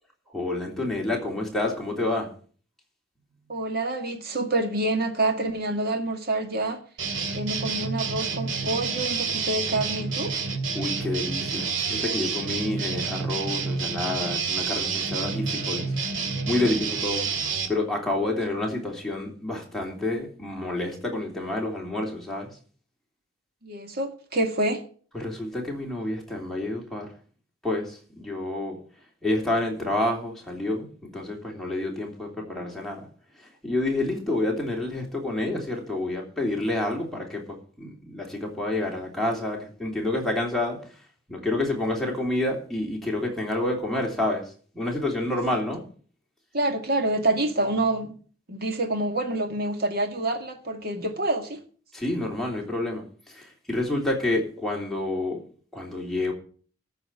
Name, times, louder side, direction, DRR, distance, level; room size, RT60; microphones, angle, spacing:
voice 1, 0.3-2.3 10.7-15.9 16.5-17.3 17.7-22.5 25.1-27.1 27.6-28.8 29.2-33.0 33.6-40.8 41.3-44.4 44.7-45.8 51.9-55.4 55.7-56.3, left 2 dB, ahead, -2 dB, 3.2 m, -28 dB
voice 2, 3.5-6.8 7.3-10.3 23.6-24.8 46.5-48.2 48.5-51.6, right 2 dB, 55° right, 5 dB, 2.2 m, -27 dB
sound 1, 7.0-17.7, right 5 dB, 90° right, 2.1 m, -29 dB
14.0 x 5.0 x 8.6 m, 0.44 s
head